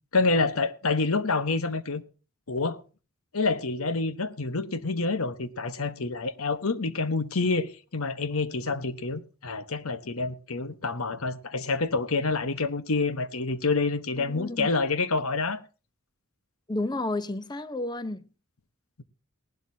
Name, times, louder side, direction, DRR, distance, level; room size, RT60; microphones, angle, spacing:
voice 1, 0.1-2.0 2.5-2.8 3.3-15.6, left 3 dB, 75° left, 1.1 m, -27 dB
voice 2, 14.2-14.7 16.7-18.3, left 2 dB, 20° left, 0.7 m, -31 dB
18.5 x 12.0 x 2.8 m
head